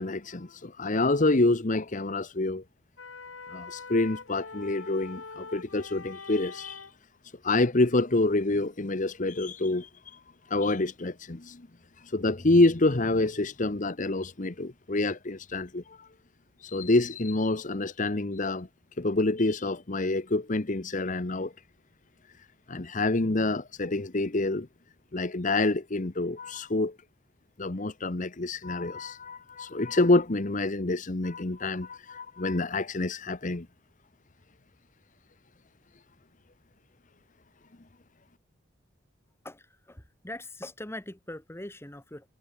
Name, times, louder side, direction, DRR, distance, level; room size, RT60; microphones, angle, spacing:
voice 1, 0.0-2.6 3.5-6.8 7.4-9.9 10.5-11.7 12.1-15.8 16.6-18.7 19.0-21.5 22.7-24.7 25.1-27.0 27.6-33.7, left 2 dB, 40° left, 1.1 m, -27 dB
sound 1, 3.0-6.9, left 4 dB, 85° left, 2.1 m, -43 dB
voice 2, 39.4-42.3, left 1 dB, 15° left, 1.7 m, -42 dB
head